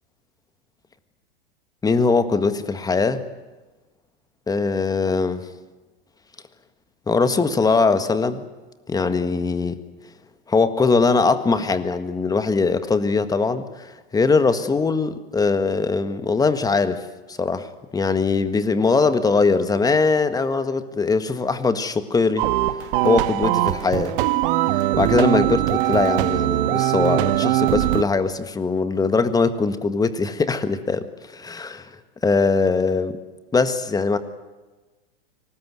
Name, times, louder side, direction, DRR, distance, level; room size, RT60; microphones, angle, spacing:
voice 1, 1.8-3.2 4.5-5.5 7.1-8.5 8.9-9.8 10.5-22.5 23.0-24.2 24.7-31.1 31.3-31.9 32.2-33.2 33.5-34.2, left 4 dB, 10° left, 11 dB, 1.6 m, -21 dB
sound 1, 22.4-28.0, right 15 dB, 60° right, 1.4 m, -21 dB
23.5 x 19.5 x 9.6 m, 1.2 s
supercardioid pair, 130°, 30 cm